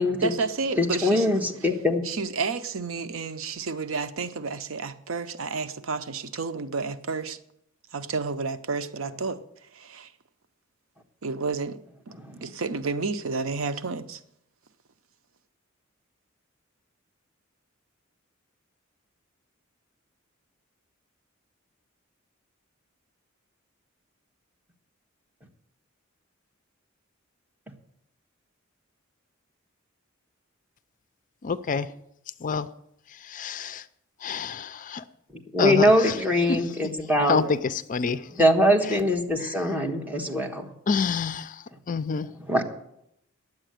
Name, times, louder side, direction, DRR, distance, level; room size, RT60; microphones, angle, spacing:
voice 1, 0.2-1.3 2.0-7.4 7.9-9.4 9.7-10.1 11.2-11.8 12.4-14.2, right 4 dB, 80° right, 0.7 m, -30 dB
voice 2, 0.8-2.0 12.2-12.4 35.5-37.4 38.4-40.7 42.5-42.6, left 1 dB, 10° right, 1.4 m, -22 dB
voice 3, 31.4-31.9 32.4-32.7 33.1-33.9 34.2-35.0 35.6-36.2 36.5-36.9 37.3-38.5 38.8-38.9 39.4-39.8 40.9-42.3, left 5 dB, 40° left, 0.4 m, -28 dB
10.0 x 7.7 x 9.1 m
head